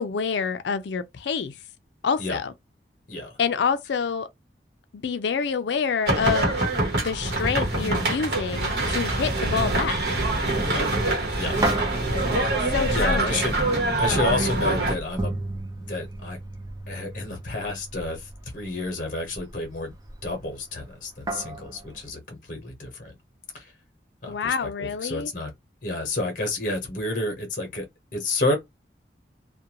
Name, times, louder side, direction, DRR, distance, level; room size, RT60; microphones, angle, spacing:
voice 1, 0.0-1.6 2.0-2.5 3.4-4.3 4.9-6.6 7.0-10.0 12.6-13.5 24.3-25.3, left 6 dB, 80° left, 0.4 m, -27 dB
sound 1, 6.1-14.9, right 2 dB, 65° right, 1.0 m, -24 dB
sound 2, 7.3-22.1, right 1 dB, 20° right, 0.5 m, -37 dB
voice 2, 12.9-13.5 14.0-15.4 15.9-16.4 16.9-19.9 20.2-23.2 23.5-23.7 24.2-25.5 25.8-27.9 28.1-28.5, left 2 dB, 50° left, 0.8 m, -30 dB
2.4 x 2.2 x 2.8 m
head